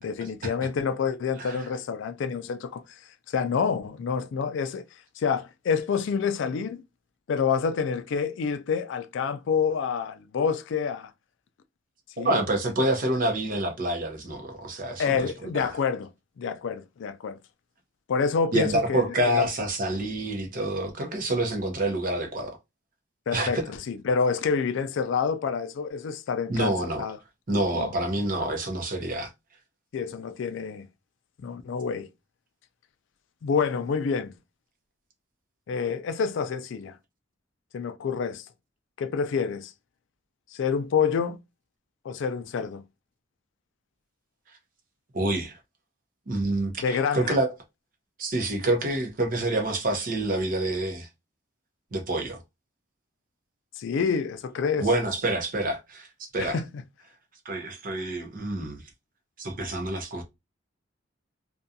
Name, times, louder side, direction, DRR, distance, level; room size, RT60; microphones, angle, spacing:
voice 1, 0.0-2.8 3.3-4.8 5.2-6.8 7.3-11.1 12.2-12.4 15.0-16.1 16.4-17.4 18.1-19.5 23.3-27.2 27.8-27.9 29.9-30.9 31.4-32.1 33.4-34.3 35.7-36.9 37.7-38.5 39.0-39.7 40.5-41.4 42.0-42.8 46.8-47.4 53.8-54.9 56.4-56.7, left 6 dB, 65° left, 0.3 m, -28 dB
voice 2, 12.2-15.7 18.5-22.6 23.3-23.6 26.5-27.1 27.5-29.3 45.1-45.5 46.3-47.5 48.2-51.1 51.9-52.4 54.8-56.1 56.3-56.6 57.5-58.8 59.4-60.2, right 1 dB, 45° right, 0.7 m, -27 dB
2.4 x 2.2 x 2.6 m
head